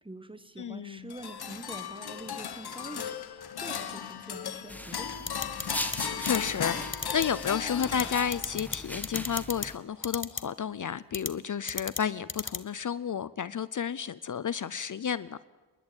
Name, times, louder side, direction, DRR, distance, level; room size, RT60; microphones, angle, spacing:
voice 1, 0.0-5.5, right 1 dB, 10° right, 12 dB, 1.3 m, -45 dB
voice 2, 0.6-1.1 6.0-6.8 7.1-15.4, left 7 dB, 50° left, 17 dB, 0.6 m, -32 dB
sound 1, 1.1-8.8, left 8 dB, 65° left, 1.3 m, -36 dB
sound 2, 4.7-9.8, left 1 dB, 5° left, 1.8 m, -40 dB
sound 3, 5.3-6.0 6.2-6.4 6.9-7.2 7.8-8.0 8.3-8.8 9.0-9.7 10.0-10.4 11.1-11.3 11.7-12.0 12.3-12.6, left 4 dB, 30° left, 1.1 m, -32 dB
28.0 x 11.5 x 8.8 m, 1.3 s
cardioid pair, 80°, 41 cm